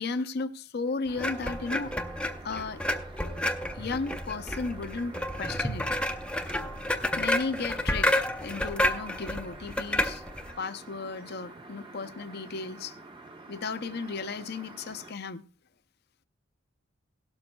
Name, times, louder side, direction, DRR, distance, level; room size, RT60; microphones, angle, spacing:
voice 1, 0.0-2.0 2.4-2.8 3.7-5.9 7.2-8.1 8.4-10.2 10.6-12.9 13.5-15.4, left 4 dB, 50° left, 0.6 m, -34 dB
sound 1, 1.1-15.1, right 2 dB, 25° right, 1.0 m, -48 dB
sound 2, 1.2-10.5, left 1 dB, 5° left, 0.6 m, -30 dB
17.0 x 12.0 x 2.3 m
head